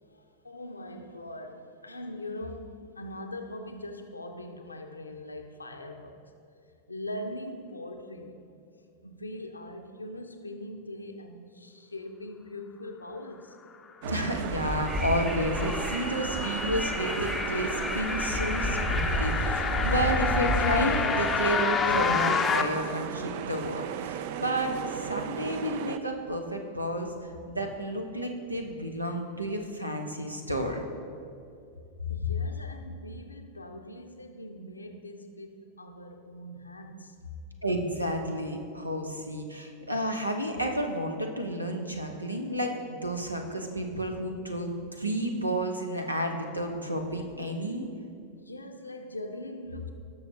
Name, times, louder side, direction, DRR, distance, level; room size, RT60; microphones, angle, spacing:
voice 1, 0.0-6.3 6.9-8.4 9.0-13.6 32.1-37.4 48.3-49.9, left 1 dB, 80° left, 0.8 m, -41 dB
sound 1, 14.0-26.0, right 9 dB, 50° right, 0.3 m, -36 dB
voice 2, 14.1-27.1 27.5-30.8 37.6-42.8 43.0-47.9, equal, 85° right, 0.9 m, -31 dB
sound 2, 14.3-22.6, left 6 dB, 20° left, 0.6 m, -30 dB
Wind, 14.3-21.0, equal, 5° right, 0.9 m, -31 dB
17.5 x 6.5 x 2.7 m
figure-of-eight pair, 90°, 0 cm